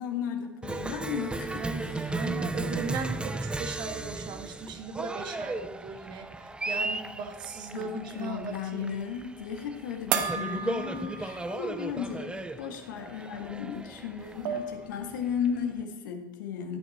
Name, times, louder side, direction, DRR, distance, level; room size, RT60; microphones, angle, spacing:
voice 1, 0.0-2.1 7.7-16.8, left 7 dB, 65° left, 4 dB, 1.7 m, -35 dB
Cheering, 0.6-15.8, right 2 dB, 10° right, 0.6 m, -36 dB
voice 2, 1.5-9.0, right 4 dB, 45° right, 5 dB, 1.8 m, -38 dB
sound 1, 10.1-11.7 12.1-12.2 13.8-13.9 14.2-14.8, right 7 dB, 60° right, 1.2 m, -33 dB
14.5 x 9.1 x 4.3 m, 0.99 s
figure-of-eight pair, 75°, 11 cm